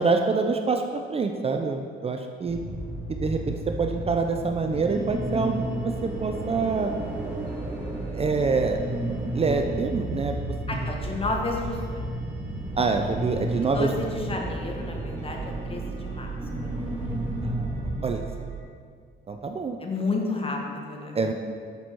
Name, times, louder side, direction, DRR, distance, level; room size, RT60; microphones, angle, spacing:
voice 1, 0.0-2.6 3.1-6.9 8.1-8.8 9.3-10.3 12.8-13.9 17.4-18.2 19.3-19.8 21.1-21.3, right 4 dB, 30° right, 5 dB, 0.5 m, -26 dB
voice 2, 2.4-2.8 10.7-12.0 13.7-16.3 16.6-17.2 19.8-21.2, left 3 dB, 30° left, 1 dB, 1.3 m, -32 dB
sound 1, 2.5-18.1, equal, 10° right, 1.7 m, -33 dB
sound 2, 4.9-18.6, right 7 dB, 55° right, 0.9 m, -39 dB
6.8 x 6.2 x 4.6 m, 2.1 s
cardioid pair, 90°, 20 cm